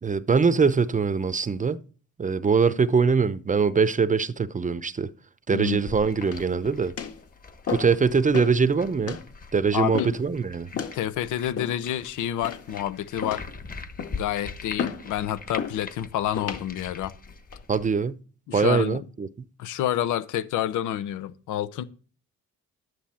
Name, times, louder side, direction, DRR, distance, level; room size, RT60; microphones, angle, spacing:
voice 1, 0.0-1.8 2.2-5.1 5.5-6.9 7.7-9.2 9.5-10.7 17.7-18.2 18.5-19.3, right 5 dB, 25° right, 0.7 m, -22 dB
sound 1, 5.6-17.9, left 4 dB, 30° left, 1.3 m, -43 dB
sound 2, 6.2-6.6 7.0-7.2 7.7-8.0 8.3-8.6 9.1-9.3 9.9-10.3 10.7-11.0 11.6-12.0 12.4-12.8 13.2-13.6 14.0-14.3 14.8-15.1 15.6-15.8 16.4-16.6 17.3-17.6, left 7 dB, 50° left, 2.0 m, -33 dB
voice 2, 9.7-10.1 10.7-13.4 14.1-17.1 18.5-19.0 19.6-21.8, left 11 dB, 85° left, 0.9 m, -28 dB
11.5 x 9.4 x 4.3 m
cardioid pair, 90°, 30 cm